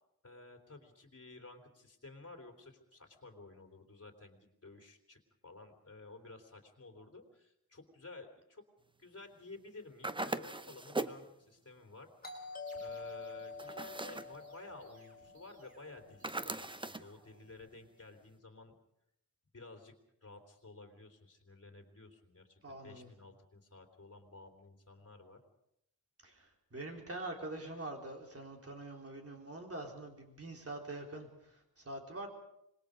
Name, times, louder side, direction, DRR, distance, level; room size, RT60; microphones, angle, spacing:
voice 1, 0.2-8.6 9.0-12.1 12.8-18.7 19.5-19.9 20.2-25.4, left 3 dB, 40° left, 4 dB, 3.4 m, -53 dB
sound 1, 10.0-11.3 13.6-14.4 16.2-17.1, right 2 dB, 15° right, 0.7 m, -39 dB
Doorbell, 12.2-16.8, left 3 dB, 25° left, 3.8 m, -48 dB
sound 2, 12.7-18.1, right 2 dB, 90° right, 5.4 m, -66 dB
voice 2, 22.6-23.1 26.2-32.3, right 2 dB, 40° right, 2 dB, 3.8 m, -45 dB
26.0 x 21.0 x 5.1 m, 0.79 s
wide cardioid pair, 130°, 38 cm